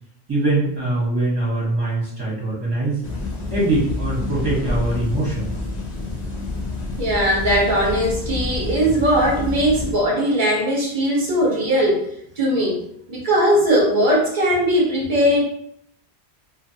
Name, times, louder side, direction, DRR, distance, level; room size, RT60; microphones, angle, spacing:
voice 1, 0.3-3.0 3.5-5.5, right 2 dB, 20° right, -7 dB, 1.3 m, -22 dB
sound 1, 3.0-10.0, left 2 dB, 45° left, 0.7 m, -28 dB
voice 2, 7.0-12.0 12.4-12.8 13.1-15.4, equal, 50° right, -4 dB, 1.0 m, -19 dB
2.8 x 2.5 x 2.7 m, 0.69 s
omnidirectional pair, 1.1 m